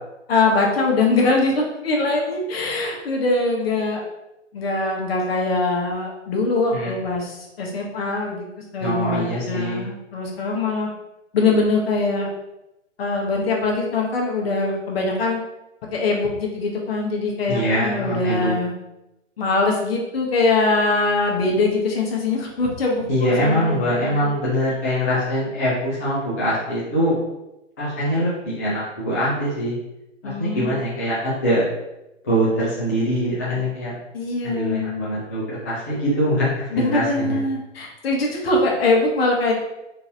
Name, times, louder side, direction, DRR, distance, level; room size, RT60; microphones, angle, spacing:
voice 1, 0.3-4.0 4.5-8.5 8.7-10.9 11.3-12.3 13.0-15.4 15.9-18.7 19.4-24.3 30.2-30.8 34.1-35.1 36.7-39.5, left 3 dB, 50° left, 0 dB, 1.0 m, -22 dB
voice 2, 8.8-9.8 17.5-18.5 23.1-27.2 27.8-29.8 30.2-31.7 32.2-33.9 34.4-37.4, equal, 15° left, -9 dB, 0.4 m, -23 dB
3.8 x 2.5 x 2.7 m, 0.92 s
hypercardioid pair, 135°, 38 cm